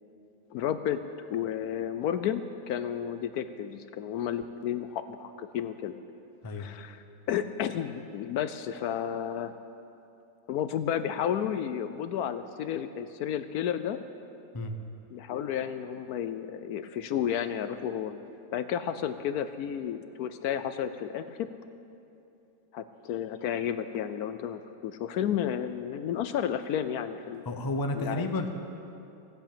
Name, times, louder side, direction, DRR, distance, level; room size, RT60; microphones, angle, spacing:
voice 1, 0.5-1.0 1.3-6.0 6.6-9.5 10.5-14.0 15.1-18.2 18.5-21.5 22.7-27.4 27.9-28.3, left 9 dB, 70° left, 10 dB, 1.0 m, -32 dB
voice 2, 27.5-28.5, left 2 dB, 20° left, 5 dB, 0.6 m, -31 dB
16.5 x 8.0 x 8.8 m, 2.8 s
omnidirectional pair, 1.8 m